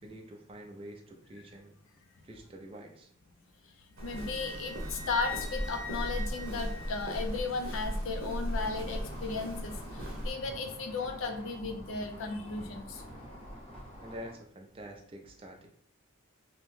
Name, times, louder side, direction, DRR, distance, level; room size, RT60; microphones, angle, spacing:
voice 1, 0.0-1.7 2.2-3.1 14.0-15.7, equal, 25° right, 2 dB, 0.4 m, -47 dB
voice 2, 4.0-13.0, left 4 dB, 75° left, 5 dB, 0.4 m, -35 dB
Wind instrument woodwind instrument, 4.0-7.5, left 3 dB, 60° left, 0.8 m, -43 dB
Walk footsteps, 4.0-10.3, equal, 80° right, 0.8 m, -37 dB
sound 1, 8.5-14.3, equal, 25° left, 0.6 m, -47 dB
2.8 x 2.1 x 3.1 m, 0.64 s
head